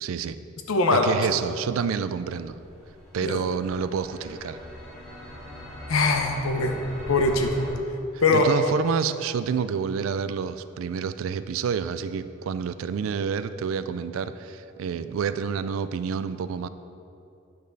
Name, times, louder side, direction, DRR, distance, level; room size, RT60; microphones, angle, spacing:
voice 1, 0.0-0.4 0.9-2.6 3.1-4.6 8.3-16.7, right 6 dB, 70° right, 13 dB, 0.3 m, -28 dB
voice 2, 0.7-1.1 3.2-3.4 5.9-6.8 7.1-7.7 8.2-8.5, left 3 dB, 80° left, 4 dB, 0.7 m, -22 dB
sound 1, 2.3-7.7, equal, ahead, 1.7 m, -41 dB
8.7 x 5.2 x 4.0 m, 2.6 s
head